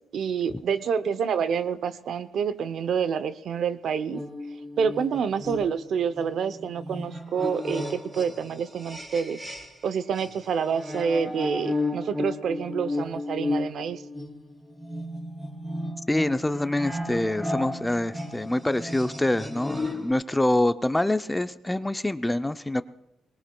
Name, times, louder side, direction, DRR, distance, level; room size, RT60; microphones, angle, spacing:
voice 1, 0.1-4.2 4.8-9.4 9.8-14.0, right 6 dB, 65° right, 13 dB, 0.6 m, -28 dB
sound 1, 4.1-9.9 10.1-20.1, left 2 dB, 15° right, 3.9 m, -34 dB
voice 2, 16.1-22.8, left 1 dB, 10° left, 11 dB, 0.5 m, -25 dB
20.5 x 18.5 x 2.3 m, 0.86 s
cardioid pair, 90°, 0 cm